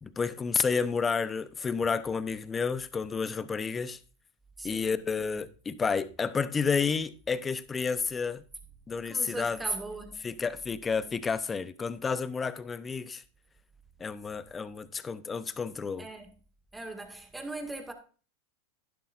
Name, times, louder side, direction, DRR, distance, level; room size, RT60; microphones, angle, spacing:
voice 1, 0.0-4.0 4.6-8.4 8.9-9.6 10.2-13.2 14.0-16.1, left 5 dB, 20° left, 0.7 m, -30 dB
voice 2, 4.6-5.0 9.0-10.2 16.0-16.3 16.7-17.9, right 2 dB, 10° right, 1.9 m, -38 dB
11.5 x 10.5 x 2.5 m
hypercardioid pair, 100°, 0 cm